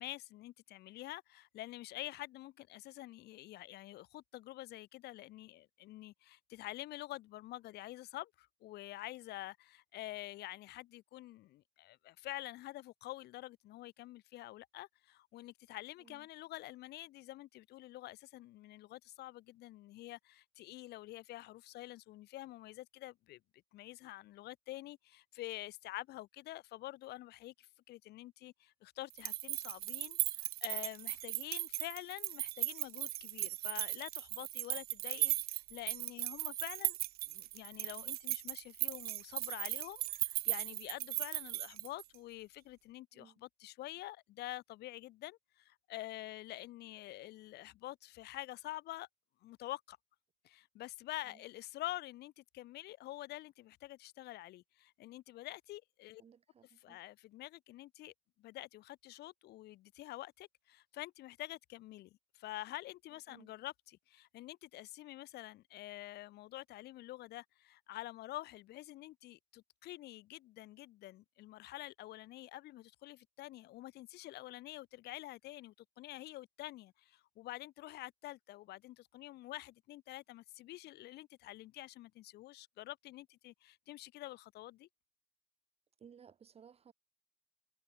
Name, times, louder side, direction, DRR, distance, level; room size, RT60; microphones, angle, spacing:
voice 1, 0.0-23.4 23.7-37.0 37.3-49.1 49.4-50.0 50.4-56.2 56.6-58.1 58.4-84.9, left 16 dB, 75° left, 1.6 m, -47 dB
sound 1, 29.1-42.2, right 16 dB, 65° right, 0.5 m, -37 dB
voice 2, 56.2-57.0 63.3-63.5 86.0-86.9, right 7 dB, 35° right, 1.2 m, -59 dB
cardioid pair, 110°, 17 cm